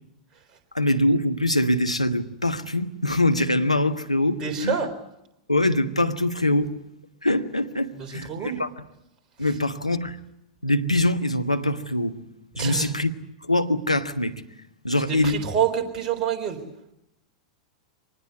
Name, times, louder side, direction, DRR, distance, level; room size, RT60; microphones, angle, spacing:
voice 1, 0.7-4.8 5.5-6.7 7.2-8.3 8.6-8.7 9.4-10.2 10.6-12.2 12.6-13.1 13.4-14.4 14.8-15.4, left 1 dB, 90° left, 1.3 m, -23 dB
voice 2, 4.4-4.9 7.9-8.6 12.6-12.9 15.1-16.6, right 7 dB, 25° right, 4.1 m, -27 dB
25.0 x 19.5 x 8.4 m
figure-of-eight pair, 95°, 3 cm